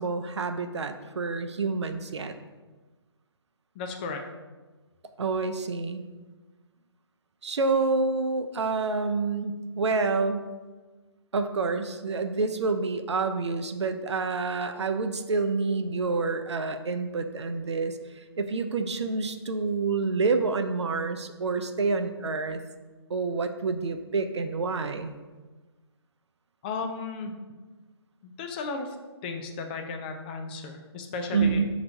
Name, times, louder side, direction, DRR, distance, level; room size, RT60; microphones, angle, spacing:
voice 1, 0.0-2.3 5.2-6.0 7.4-10.5 11.3-18.0 18.4-22.6 23.1-25.1 31.3-31.6, right 4 dB, 80° right, 8 dB, 0.4 m, -28 dB
voice 2, 3.8-4.2 26.6-27.3 28.2-29.0 29.2-31.6, left 4 dB, 20° left, 4 dB, 0.4 m, -34 dB
5.4 x 2.9 x 2.7 m, 1.3 s
figure-of-eight pair, 140°, 14 cm